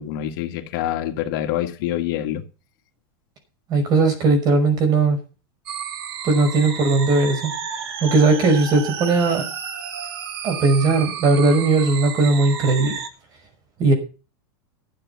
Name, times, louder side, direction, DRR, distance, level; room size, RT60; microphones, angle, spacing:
voice 1, 0.0-2.5, left 12 dB, 55° left, 1.9 m, -26 dB
voice 2, 3.7-5.2 6.2-7.5 8.0-9.4 10.4-13.0 13.8-13.9, right 3 dB, 30° right, 5.6 m, -18 dB
sound 1, 5.7-13.1, right 7 dB, 80° right, 2.6 m, -32 dB
13.0 x 8.7 x 7.0 m
supercardioid pair, 160°, 13 cm